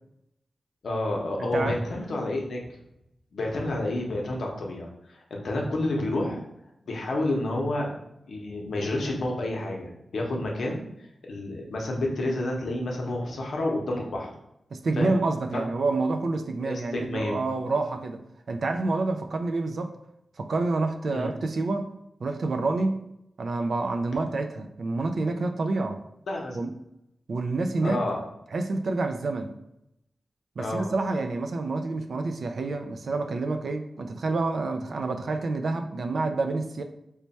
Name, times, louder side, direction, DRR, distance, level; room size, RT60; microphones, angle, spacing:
voice 1, 0.8-2.6 3.3-6.4 6.9-8.0 8.2-14.3 15.0-15.1 15.5-15.6 16.6-17.4 21.1-21.3 26.3-26.6 27.8-28.2 30.6-30.9, left 1 dB, 75° left, 0 dB, 0.7 m, -29 dB
voice 2, 1.4-1.8 14.7-18.2 18.5-20.0 20.4-21.9 22.2-23.1 23.4-26.0 26.5-26.7 27.3-28.0 28.5-29.5 30.6-36.8, right 3 dB, 65° right, 5 dB, 0.3 m, -28 dB
3.2 x 2.2 x 4.1 m, 0.82 s
wide cardioid pair, 105°, 0 cm